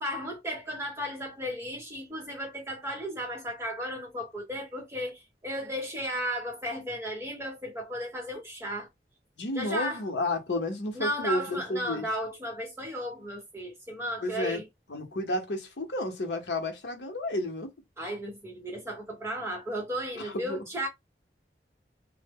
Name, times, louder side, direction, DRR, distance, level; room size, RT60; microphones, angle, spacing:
voice 1, 0.0-8.9 9.5-10.0 10.9-14.6 18.0-20.9, equal, 15° right, 0.8 m, -34 dB
voice 2, 9.4-12.1 14.2-14.6 14.9-17.7 20.2-20.6, left 1 dB, 75° left, 0.7 m, -31 dB
2.0 x 2.0 x 3.4 m
head